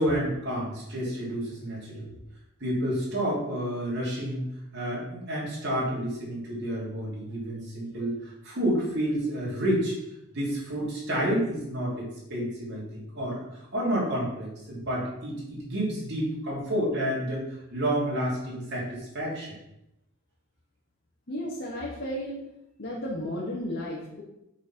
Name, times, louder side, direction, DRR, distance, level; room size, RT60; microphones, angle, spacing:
voice 1, 0.0-2.1 2.6-4.5 4.7-10.0 10.3-19.5, equal, 55° right, -5 dB, 3.2 m, -30 dB
voice 2, 21.3-22.4 22.8-24.2, left 1 dB, 55° left, -5 dB, 1.4 m, -33 dB
6.8 x 4.6 x 5.8 m, 0.86 s
head